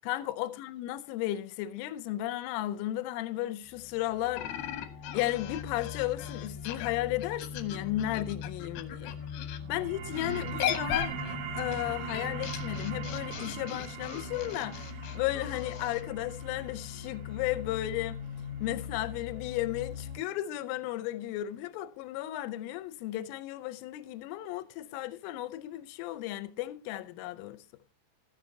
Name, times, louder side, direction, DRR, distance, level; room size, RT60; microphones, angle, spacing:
voice 1, 0.0-4.7 5.1-9.2 9.7-11.2 11.6-18.2 18.6-27.6, left 14 dB, 90° left, 3.3 m, -34 dB
sound 1, 3.6-20.2, left 7 dB, 25° right, 1.9 m, -42 dB
sound 2, 4.3-9.6 10.1-16.0, left 10 dB, 70° left, 2.5 m, -38 dB
sound 3, 9.6-20.7, right 6 dB, 70° right, 2.7 m, -42 dB
14.0 x 13.5 x 2.7 m
omnidirectional pair, 5.6 m